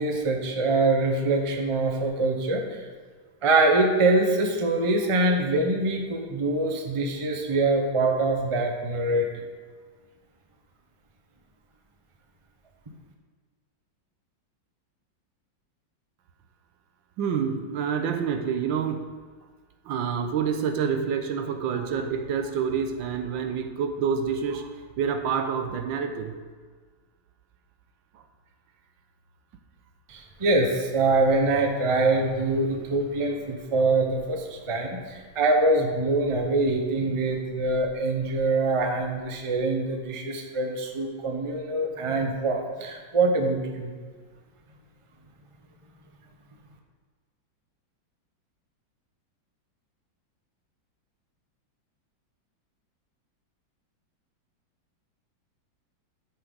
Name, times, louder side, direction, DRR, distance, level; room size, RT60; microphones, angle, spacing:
voice 1, 0.0-2.6 3.4-9.3 30.1-44.0, right 2 dB, 25° right, 3 dB, 0.6 m, -24 dB
voice 2, 17.2-19.1 19.8-26.4 28.1-28.2, right 6 dB, 75° right, 6 dB, 1.5 m, -28 dB
12.5 x 6.9 x 4.0 m, 1.5 s
omnidirectional pair, 2.1 m